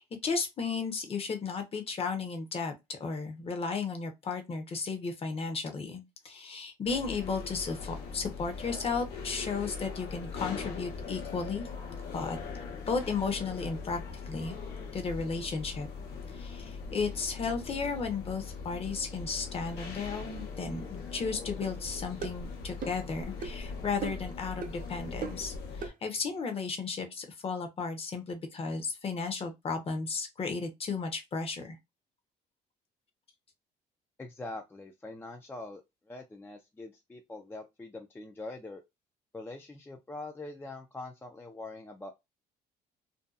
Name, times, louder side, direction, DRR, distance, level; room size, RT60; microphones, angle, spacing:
voice 1, 0.0-11.7 12.1-12.4 12.9-14.0 14.3-14.6 14.9-15.9 16.3-31.8, left 4 dB, 35° left, 0.8 m, -34 dB
sound 1, 6.9-25.9, left 4 dB, 70° left, 1.0 m, -41 dB
sound 2, 21.6-21.7 22.2-22.4 22.8-23.1 23.4-23.6 24.0-24.3 24.6-24.8 25.2-25.5 25.8-26.0, right 6 dB, 55° right, 0.8 m, -38 dB
voice 2, 34.2-35.8 36.1-38.8 39.3-42.1, left 2 dB, 15° left, 0.4 m, -43 dB
2.7 x 2.2 x 2.3 m
cardioid pair, 110°, 17 cm